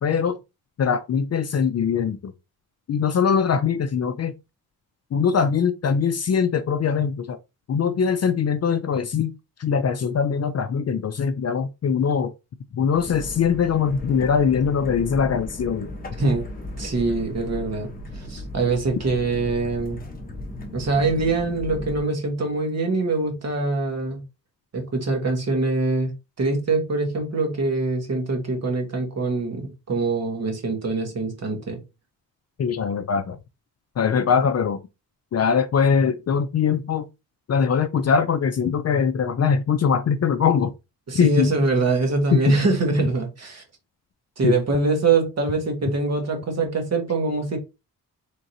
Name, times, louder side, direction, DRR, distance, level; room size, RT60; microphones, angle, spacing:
voice 1, 0.0-0.4 0.8-2.3 2.9-4.3 5.1-7.4 7.7-9.3 9.6-12.3 12.7-15.9 32.6-33.4 34.0-34.8 35.3-37.1 37.5-40.7 41.1-41.5 42.3-42.4 44.4-44.6, left 6 dB, 45° left, 0.4 m, -22 dB
sound 1, 12.9-22.0, left 1 dB, 25° left, 0.9 m, -36 dB
voice 2, 16.8-20.0 20.7-24.2 24.7-26.1 26.4-31.8 41.1-43.6 44.4-47.6, right 3 dB, 45° right, 1.4 m, -24 dB
4.4 x 3.6 x 2.7 m
wide cardioid pair, 145°, 37 cm